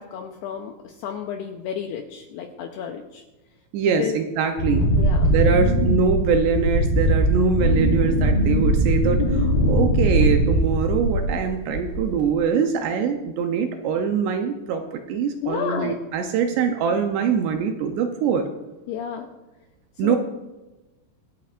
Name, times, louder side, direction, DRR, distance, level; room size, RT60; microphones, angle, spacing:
voice 1, 0.0-3.2 3.8-4.2 4.9-5.3 15.4-16.0 18.9-19.3 20.0-20.2, left 8 dB, 85° left, 3 dB, 2.3 m, -31 dB
voice 2, 3.7-4.9 5.3-18.5 20.0-20.2, right 6 dB, 80° right, 4 dB, 2.6 m, -23 dB
Wind, 4.6-11.4 11.7-12.2, right 1 dB, 35° left, 3.5 m, -20 dB
26.0 x 8.7 x 2.5 m, 1.1 s
omnidirectional pair, 5.6 m